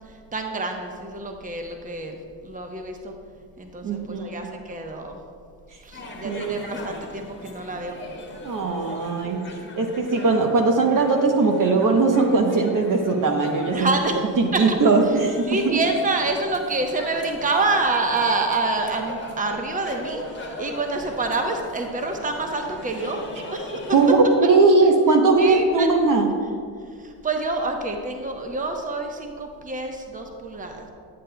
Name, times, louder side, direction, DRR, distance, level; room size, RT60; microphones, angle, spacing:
voice 1, 0.3-3.1 3.6-5.2 5.8-8.0 13.7-14.3 14.5-14.8 15.5-24.0 25.4-25.9 27.0-30.9, right 2 dB, 20° right, 3 dB, 0.9 m, -27 dB
voice 2, 3.8-4.4 6.2-6.5 8.4-9.5 9.8-13.9 14.4-15.8 23.5-23.6 23.9-26.3, right 3 dB, 45° right, 3 dB, 0.9 m, -19 dB
sound 1, 5.9-24.2, left 1 dB, 25° left, 1.4 m, -40 dB
9.8 x 8.4 x 2.2 m, 2.1 s
supercardioid pair, 65°, 45 cm